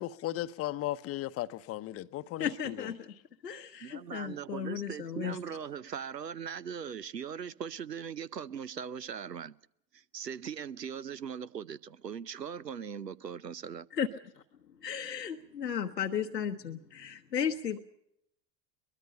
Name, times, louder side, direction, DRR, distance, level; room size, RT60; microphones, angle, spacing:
voice 1, 0.0-2.9, left 14 dB, 30° left, 0.8 m, -36 dB
voice 2, 2.4-3.1 3.4-5.4 13.9-14.1 14.8-17.8, left 8 dB, 80° left, 1.0 m, -34 dB
voice 3, 3.8-9.5 9.9-13.9, right 7 dB, 90° right, 0.7 m, -40 dB
23.0 x 20.5 x 5.5 m
figure-of-eight pair, 85°, 48 cm